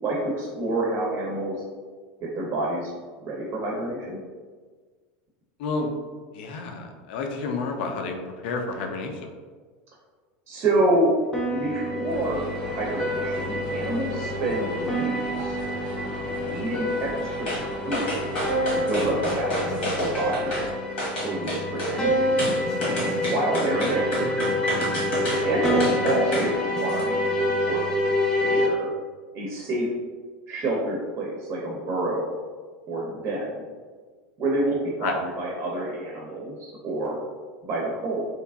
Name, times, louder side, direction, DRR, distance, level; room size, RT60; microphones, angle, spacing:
voice 1, 0.0-1.6 2.2-2.9 3.2-4.2 10.5-11.1 11.5-15.6 16.5-17.5 17.9-18.2 18.7-20.7 21.2-22.4 23.2-24.3 25.3-28.9 29.3-29.9 30.5-32.3 32.9-33.6 34.4-37.2 37.6-38.2, right 1 dB, 40° right, -3 dB, 0.5 m, -28 dB
voice 2, 5.6-5.9 6.3-9.2 24.2-24.3 35.0-35.1, left 4 dB, 75° left, 3 dB, 0.4 m, -30 dB
sound 1, 11.3-28.7, left 1 dB, 10° left, 0.5 m, -27 dB
sound 2, 12.1-20.7, right 1 dB, 90° right, 0.5 m, -37 dB
sound 3, 17.5-17.6 17.9-20.7 21.0-22.0 22.4-26.5 26.9-27.0, equal, 90° left, 1.1 m, -29 dB
2.8 x 2.4 x 2.3 m, 1.5 s
supercardioid pair, 110°, 6 cm